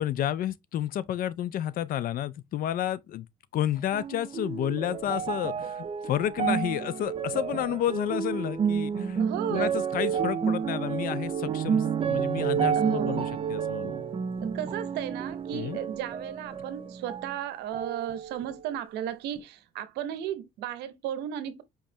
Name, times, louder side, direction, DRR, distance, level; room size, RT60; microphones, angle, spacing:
voice 1, 0.0-3.3 3.5-14.0 15.5-15.8, left 11 dB, 60° left, 0.4 m, -31 dB
sound 1, 3.9-17.4 17.7-18.7 19.4-19.5, right 7 dB, 35° right, 0.6 m, -30 dB
voice 2, 9.2-9.7 12.8-13.3 14.4-21.6, right 10 dB, 85° right, 0.7 m, -35 dB
4.8 x 3.1 x 2.7 m
cardioid pair, 110°, 17 cm